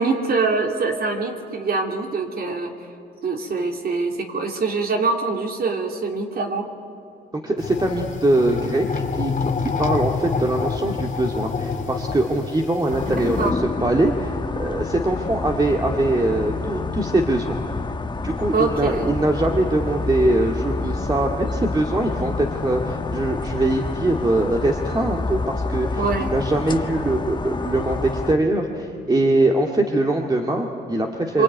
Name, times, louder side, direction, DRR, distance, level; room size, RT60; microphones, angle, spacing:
voice 1, 0.0-2.7 3.2-6.7 13.4-13.6 18.5-19.1 26.0-26.3 31.3-31.4, right 4 dB, 50° right, 2 dB, 3.1 m, -24 dB
voice 2, 7.3-8.9 9.1-13.4 13.8-17.6 18.2-31.4, right 1 dB, 20° right, 1 dB, 2.2 m, -22 dB
sound 1, 7.6-13.5, left 5 dB, 40° left, 2.4 m, -28 dB
sound 2, 12.9-28.3, left 3 dB, 20° left, 1.2 m, -28 dB
26.5 x 23.5 x 9.5 m, 2.5 s
cardioid pair, 90°, 20 cm